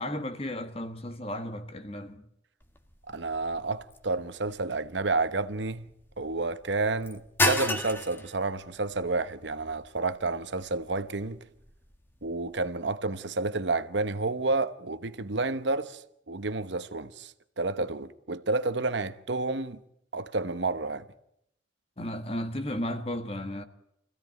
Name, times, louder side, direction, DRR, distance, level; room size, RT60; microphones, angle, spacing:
voice 1, 0.0-2.3 22.0-23.6, left 1 dB, 30° left, 1.4 m, -34 dB
sound 1, 2.6-12.7, left 2 dB, 10° left, 1.3 m, -36 dB
voice 2, 3.1-5.8 6.2-11.4 12.2-16.0 16.3-19.8 20.1-21.0, right 3 dB, 70° right, 1.0 m, -30 dB
25.5 x 16.0 x 9.3 m
head